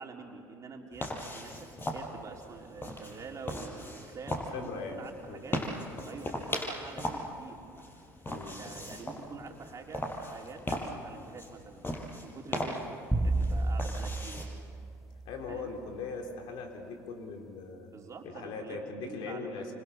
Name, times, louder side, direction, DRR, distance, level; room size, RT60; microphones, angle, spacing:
voice 1, 0.0-1.5 1.9-5.6 6.0-7.6 8.6-11.9 12.2-14.5 15.5-15.7 17.9-19.6, right 4 dB, 40° right, 1 dB, 4.0 m, -46 dB
sound 1, 0.9-14.4, left 1 dB, 25° left, 6.0 m, -39 dB
voice 2, 4.5-5.4 8.3-8.6 15.3-17.9 18.2-19.7, left 4 dB, 70° left, 2 dB, 3.8 m, -40 dB
sound 2, 13.1-15.6, right 2 dB, 5° right, 1.9 m, -31 dB
27.5 x 26.0 x 7.2 m, 2.4 s
hypercardioid pair, 70°, 9 cm